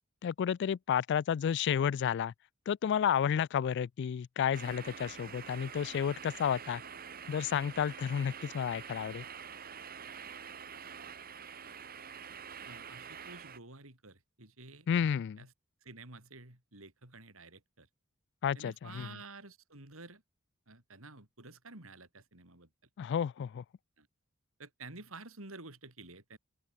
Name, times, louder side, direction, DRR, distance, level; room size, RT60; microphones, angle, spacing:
voice 1, 0.2-2.3 2.7-6.8 7.3-9.2 14.9-15.4 18.4-19.1 23.0-23.6, left 8 dB, 55° left, 0.3 m, -31 dB
sound 1, 4.5-13.6, right 7 dB, 45° right, 1.9 m, -46 dB
voice 2, 12.6-14.9 15.4-15.5 15.8-17.9 18.5-20.2 20.7-22.7 24.0-24.1 24.6-26.4, right 3 dB, 75° right, 5.2 m, -51 dB
open air
head